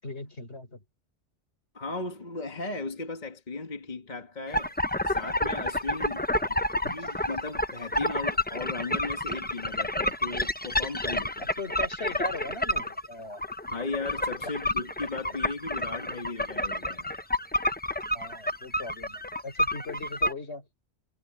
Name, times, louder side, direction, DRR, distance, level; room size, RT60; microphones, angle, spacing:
voice 1, 0.0-0.8 6.3-6.5 6.8-7.0 11.4-13.4 14.4-14.6 18.1-20.7, left 3 dB, 65° left, 4.4 m, -39 dB
voice 2, 1.7-4.7 5.0-6.2 6.9-11.5 13.7-17.2, left 3 dB, 40° left, 1.6 m, -36 dB
sound 1, 4.5-20.3, left 1 dB, 10° left, 0.7 m, -29 dB
omnidirectional pair, 1.2 m